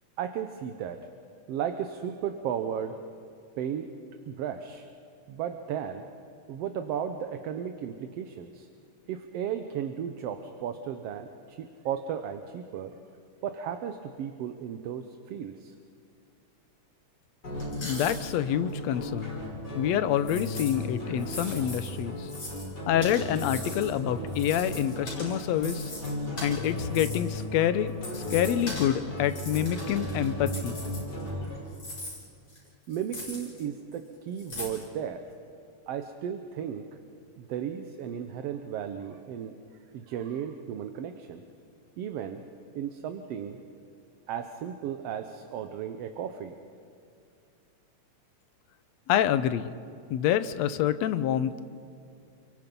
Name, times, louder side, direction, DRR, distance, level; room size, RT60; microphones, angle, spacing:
voice 1, 0.2-1.0 1.5-3.0 3.6-3.9 4.3-4.9 5.3-6.1 6.5-8.7 9.1-13.0 13.4-15.7 32.9-35.2 35.9-36.9 37.4-39.5 39.9-41.4 42.0-42.4 42.8-43.6 44.3-46.6, right 8 dB, 65° right, 7 dB, 1.8 m, -35 dB
sound 1, 17.4-31.6, left 1 dB, 35° left, 6.6 m, -36 dB
sound 2, 17.6-18.3 18.7-18.8 20.2-20.7 21.2-22.7 23.0-23.9 24.3-27.4 27.9-28.9 29.2-31.4 31.7-33.6 33.9-34.0 34.4-34.8, left 2 dB, 50° left, 8.5 m, -40 dB
voice 2, 17.8-19.4 19.8-22.3 22.9-25.8 26.4-30.8 49.1-49.7 50.1-51.6, left 10 dB, 75° left, 13 dB, 1.9 m, -27 dB
29.5 x 23.5 x 5.4 m, 2.4 s
omnidirectional pair, 3.3 m